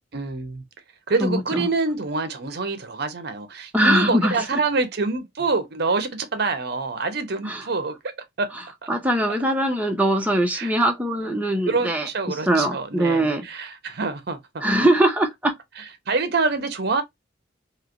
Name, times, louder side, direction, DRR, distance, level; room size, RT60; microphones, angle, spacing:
voice 1, 0.1-0.6 1.1-8.5 9.3-9.4 10.5-10.7 11.7-14.4 15.8-17.0, right 3 dB, 55° right, 0.7 m, -26 dB
voice 2, 1.2-1.7 3.7-4.4 7.5-7.6 8.9-13.4 14.6-15.5, right 1 dB, 10° right, 0.7 m, -21 dB
3.1 x 2.8 x 2.5 m
head